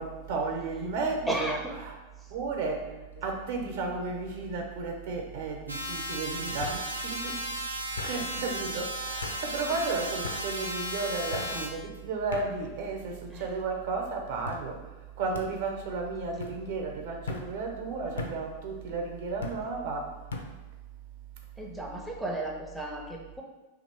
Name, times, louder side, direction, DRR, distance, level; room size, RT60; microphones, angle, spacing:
voice 1, 0.0-1.9 2.3-2.9 3.2-7.4 8.0-14.8 15.2-20.1, right 4 dB, 55° right, 2 dB, 0.7 m, -33 dB
voice 2, 1.3-1.7 2.2-2.3 8.0-8.1 11.5-11.7 13.3-13.5 21.6-23.4, right 1 dB, 5° right, -1 dB, 0.5 m, -35 dB
sound 1, 3.1-3.5 3.9-4.5 5.5-5.6 6.6-6.8 8.0-8.2 9.2-9.4 10.2-10.4 11.3-11.5 12.3-12.5 13.2-13.7 14.5-14.6 15.3-15.5 16.4-16.6 17.3-17.5 18.2-18.4 19.4-19.6 20.3-20.5, left 4 dB, 65° left, 0.5 m, -38 dB
sound 2, 5.7-11.7, right 1 dB, 80° right, 0.4 m, -35 dB
2.9 x 2.6 x 4.4 m, 1.1 s
figure-of-eight pair, 90°, 0 cm